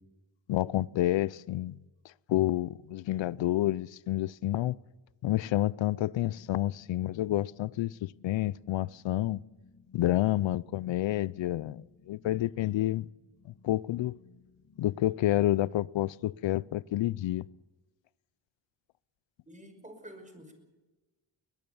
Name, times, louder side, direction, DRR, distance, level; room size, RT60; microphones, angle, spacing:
voice 1, 0.5-1.8 2.3-4.8 5.2-9.4 9.9-13.1 13.5-14.1 14.8-17.4, left 14 dB, 75° left, 0.6 m, -29 dB
sound 1, 5.3-17.5, left 4 dB, 50° left, 3.7 m, -62 dB
voice 2, 19.5-20.5, right 1 dB, 15° right, 5.6 m, -49 dB
22.0 x 20.5 x 7.1 m
cardioid pair, 90°, 45 cm